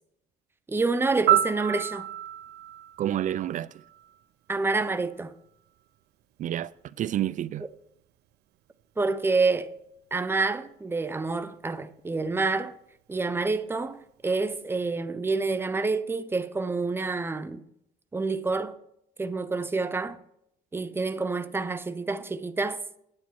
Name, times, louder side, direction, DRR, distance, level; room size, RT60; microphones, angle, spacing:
voice 1, 0.7-2.1 4.5-5.3 9.0-9.7 10.1-12.7 13.1-17.6 18.1-18.7 19.2-20.2 20.7-22.8, right 3 dB, 15° right, 0.7 m, -28 dB
Piano, 1.3-4.2 12.3-12.5, right 12 dB, 75° right, 0.7 m, -29 dB
voice 2, 3.0-3.7 6.4-7.7, right 11 dB, 50° right, 0.4 m, -29 dB
9.6 x 8.4 x 4.6 m
cardioid pair, 110°, 17 cm